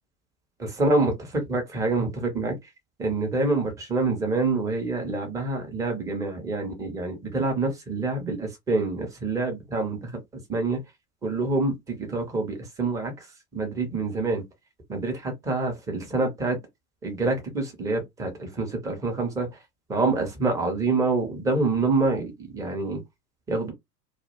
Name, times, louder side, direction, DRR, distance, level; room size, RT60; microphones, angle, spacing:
voice 1, 0.6-1.1 1.5-2.5 3.0-10.1 10.5-10.8 11.2-13.1 13.5-14.4 14.9-16.6 17.0-19.5 19.9-23.0 23.5-23.7, right 3 dB, 10° right, 0.4 m, -26 dB
2.1 x 2.0 x 2.8 m
figure-of-eight pair, 85°, 48 cm